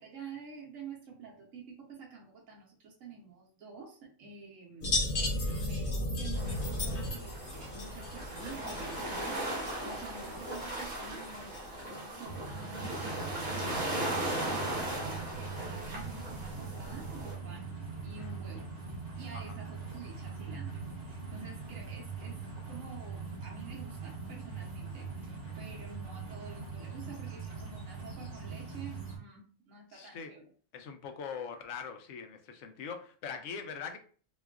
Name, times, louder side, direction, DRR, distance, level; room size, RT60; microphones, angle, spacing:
voice 1, 0.0-18.6 19.2-30.4, right 4 dB, 80° right, -1 dB, 1.2 m, -49 dB
sound 1, 4.8-11.8, left 1 dB, 50° left, 0.8 m, -35 dB
sound 2, 6.3-17.3, right 1 dB, 35° right, 1.1 m, -38 dB
sound 3, 12.2-29.2, right 4 dB, 65° right, 1.9 m, -42 dB
voice 2, 29.9-30.3 30.7-34.0, left 6 dB, 75° left, 6 dB, 0.9 m, -42 dB
4.1 x 2.3 x 2.4 m, 0.42 s
omnidirectional pair, 1.4 m